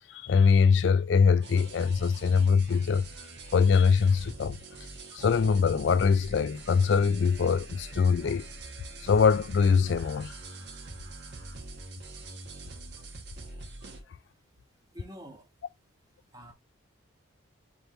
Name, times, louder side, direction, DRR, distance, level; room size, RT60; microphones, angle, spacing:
voice 1, 0.1-3.1 3.5-4.6 5.1-8.5 9.0-10.3, left 5 dB, 60° left, 0.3 m, -23 dB
sound 1, 1.4-14.0, right 2 dB, 55° right, 1.3 m, -44 dB
voice 2, 13.9-15.5 16.3-16.5, equal, 20° right, 1.4 m, -50 dB
5.3 x 3.0 x 3.0 m
head